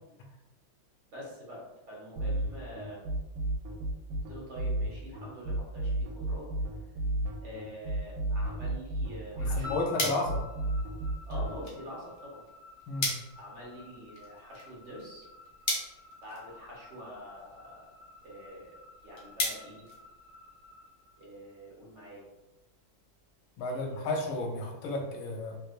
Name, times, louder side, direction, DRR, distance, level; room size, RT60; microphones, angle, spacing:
voice 1, 1.1-3.1 4.3-6.5 7.4-10.1 11.3-12.4 13.4-15.2 16.2-17.9 18.2-18.7 19.0-19.8 21.2-22.2 23.7-24.0, equal, 45° right, -4 dB, 1.2 m, -46 dB
sound 1, 2.2-11.6, right 1 dB, 75° right, 1.3 m, -32 dB
voice 2, 9.4-10.4 12.9-13.1 23.6-25.6, left 2 dB, 80° left, 2 dB, 1.5 m, -32 dB
sound 2, 9.6-21.9, left 4 dB, 30° right, 0.8 m, -51 dB
sound 3, 10.0-20.7, left 2 dB, 60° left, 1.0 m, -40 dB
3.4 x 3.1 x 2.4 m, 1.0 s
omnidirectional pair, 2.2 m